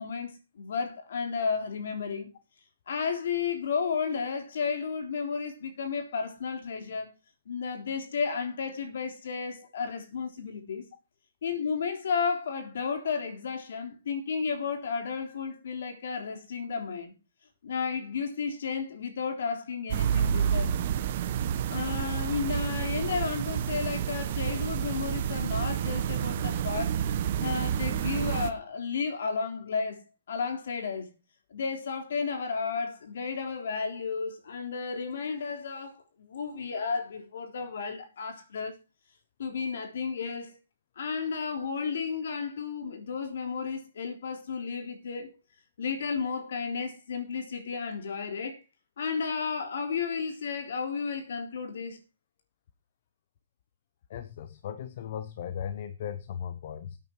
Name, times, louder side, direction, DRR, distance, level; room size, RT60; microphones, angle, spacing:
voice 1, 0.0-2.3 2.9-7.1 7.5-10.8 11.4-17.1 17.6-20.8 21.7-30.0 30.3-31.1 31.5-38.7 39.4-40.6 41.0-45.3 45.8-48.6 49.0-52.0, left 5 dB, 60° left, 3.5 m, -33 dB
sound 1, 19.9-28.5, right 9 dB, 35° right, 1.0 m, -29 dB
voice 2, 54.1-57.0, left 8 dB, 40° left, 0.8 m, -37 dB
12.0 x 8.9 x 4.7 m
hypercardioid pair, 180°, 0 cm